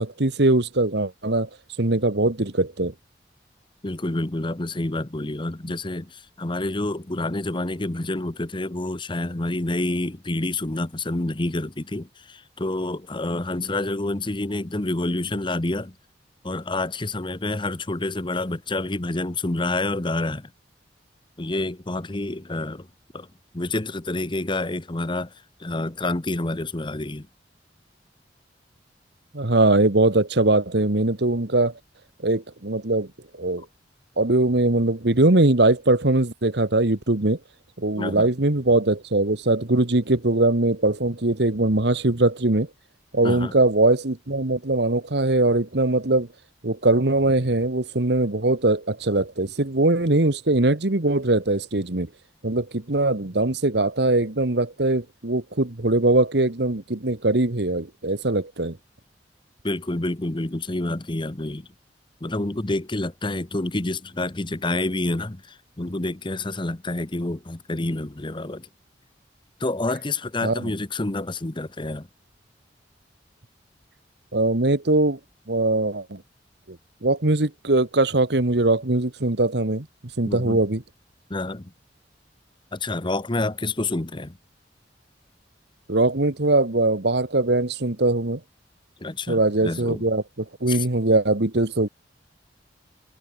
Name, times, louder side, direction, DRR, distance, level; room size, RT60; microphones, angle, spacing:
voice 1, 0.0-1.5 1.8-2.9 29.3-31.7 32.2-33.1 33.4-33.6 34.2-37.4 37.8-42.7 43.1-46.3 46.6-52.1 52.4-58.8 70.4-70.7 74.3-75.2 75.5-76.2 76.7-76.8 77.0-79.9 80.2-80.8 85.9-88.4 89.3-90.2 90.6-91.9, right 2 dB, 65° right, 1.6 m, -21 dB
voice 2, 3.8-15.9 16.4-20.5 21.4-22.9 23.1-23.3 23.5-25.3 25.6-27.3 38.0-38.3 43.2-43.5 59.6-61.7 62.2-68.7 69.6-72.1 80.3-80.6 81.3-81.7 82.7-84.4 89.0-90.0 90.7-90.9, left 2 dB, 25° left, 1.1 m, -28 dB
head